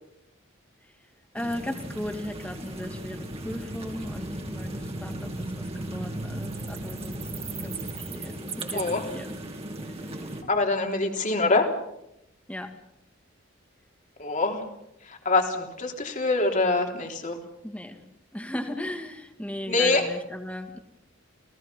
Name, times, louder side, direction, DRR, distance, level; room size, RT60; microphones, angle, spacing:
voice 1, 1.3-7.2 7.6-8.8 9.1-9.4 10.0-10.4 12.5-12.7 17.6-18.0 18.3-20.8, left 1 dB, 5° left, 5 dB, 2.3 m, -37 dB
sound 1, 1.4-10.4, right 1 dB, 30° right, 3.1 m, -36 dB
voice 2, 8.7-9.0 10.5-11.7 14.2-14.6 15.0-17.4 19.7-20.1, left 3 dB, 40° left, 3 dB, 3.4 m, -24 dB
29.5 x 18.0 x 5.8 m, 0.83 s
head